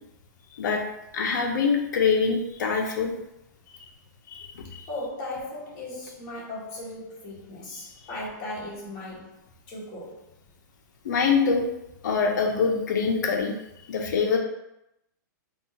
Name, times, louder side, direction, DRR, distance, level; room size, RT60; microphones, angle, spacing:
voice 1, 1.1-3.1 4.3-4.8 11.0-11.7 12.0-13.6 13.9-14.4, left 5 dB, 70° left, 3 dB, 0.7 m, -24 dB
voice 2, 4.6-9.4 9.7-10.2, left 1 dB, 35° left, -5 dB, 1.2 m, -37 dB
3.6 x 2.4 x 2.7 m, 0.85 s
hypercardioid pair, 155°, 10 cm